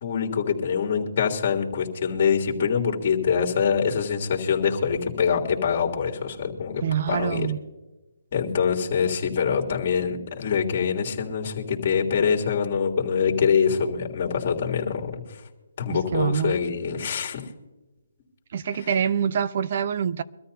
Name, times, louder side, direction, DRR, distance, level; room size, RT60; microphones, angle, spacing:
voice 1, 0.0-7.5 8.3-15.4 15.8-17.4 18.8-18.9, left 6 dB, 40° left, 3.3 m, -24 dB
voice 2, 6.8-7.6 15.9-16.6 18.5-20.2, right 8 dB, 45° right, 0.8 m, -25 dB
24.0 x 13.5 x 2.8 m
hypercardioid pair, 160°, 0 cm